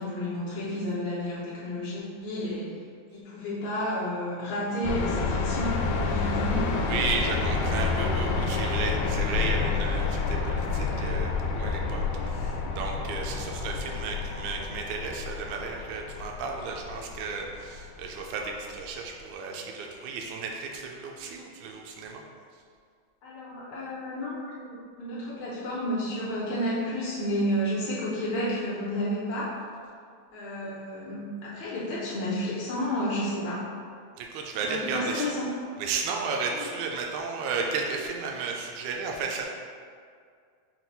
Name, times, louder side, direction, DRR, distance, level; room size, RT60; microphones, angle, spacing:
voice 1, 0.0-2.7 3.1-6.9 23.2-29.5 30.3-33.6 34.5-35.5 36.5-36.7, equal, 70° left, -8 dB, 1.9 m, -31 dB
sound 1, 4.8-18.8, left 4 dB, 90° left, 2.2 m, -29 dB
voice 2, 6.9-22.2 34.2-35.3 35.8-39.5, right 4 dB, 80° right, 1 dB, 1.6 m, -33 dB
5.9 x 2.3 x 3.9 m, 2.2 s
omnidirectional pair, 3.7 m